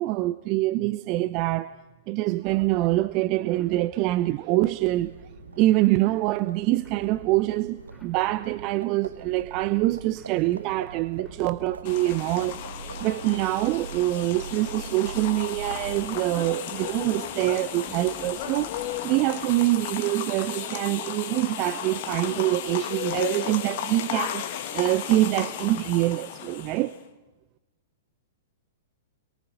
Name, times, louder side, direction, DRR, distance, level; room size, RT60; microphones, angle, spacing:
voice 1, 0.0-1.7 2.1-5.1 5.6-12.6 13.0-27.0, right 17 dB, 35° right, 0.7 m, -25 dB
sound 1, 2.4-20.1, left 1 dB, ahead, 5.2 m, -54 dB
Livestock farm animals working animals, 4.7-16.3, right 5 dB, 75° right, 0.7 m, -42 dB
sound 2, 11.8-27.0, left 10 dB, 45° left, 1.7 m, -34 dB
28.0 x 23.0 x 5.7 m
figure-of-eight pair, 105°, 0 cm